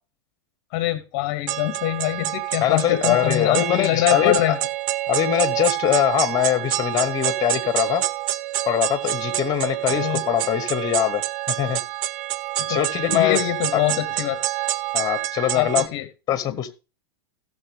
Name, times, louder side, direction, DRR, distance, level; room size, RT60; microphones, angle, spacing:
voice 1, 0.7-4.6 9.9-10.2 12.6-14.4 15.5-16.1 16.5-16.6, left 16 dB, 50° left, 14 dB, 0.9 m, -24 dB
sound 1, 1.5-15.9, right 14 dB, 55° right, 0.6 m, -27 dB
voice 2, 2.6-4.4 5.1-8.0 8.7-11.2 11.5-11.8 12.7-13.4 13.7-13.8 14.9-15.8 16.3-16.8, left 11 dB, 30° left, 14 dB, 1.3 m, -22 dB
16.0 x 6.5 x 3.4 m, 0.31 s
hypercardioid pair, 125°, 13 cm